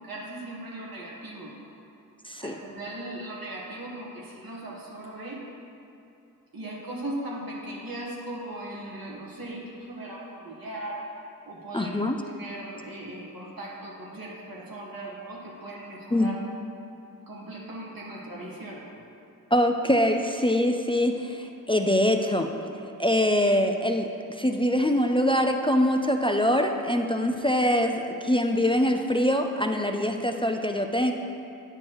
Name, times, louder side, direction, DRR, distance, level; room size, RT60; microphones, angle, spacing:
voice 1, 0.0-1.5 2.4-5.4 6.5-11.0 11.4-12.0 12.3-16.4 17.3-18.9, right 1 dB, 80° right, -4 dB, 1.4 m, -38 dB
voice 2, 11.7-12.2 16.1-16.3 19.5-22.5 23.0-31.1, left 1 dB, 15° left, 4 dB, 0.3 m, -24 dB
8.7 x 6.2 x 3.0 m, 2.7 s
wide cardioid pair, 50°, 35 cm